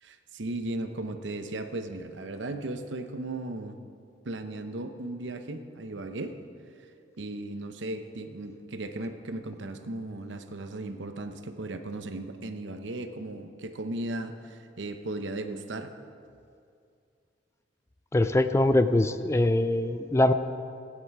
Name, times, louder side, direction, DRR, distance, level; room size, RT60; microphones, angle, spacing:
voice 1, 0.0-3.8 4.2-6.4 7.2-15.9, right 2 dB, 75° right, 7 dB, 0.8 m, -36 dB
voice 2, 18.1-20.3, left 1 dB, 15° left, 11 dB, 0.4 m, -23 dB
16.0 x 9.8 x 4.8 m, 2.4 s
head